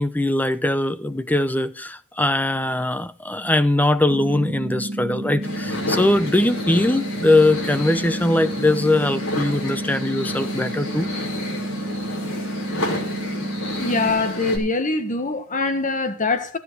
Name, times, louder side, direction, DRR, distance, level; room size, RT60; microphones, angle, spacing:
voice 1, 0.0-11.1, left 1 dB, 10° left, 0.8 m, -21 dB
sound 1, 4.1-14.1, right 1 dB, 40° right, 1.6 m, -30 dB
sound 2, 5.4-14.6, left 2 dB, 75° left, 5.3 m, -31 dB
voice 2, 13.8-16.6, left 3 dB, 35° left, 1.5 m, -23 dB
15.0 x 8.3 x 4.7 m
head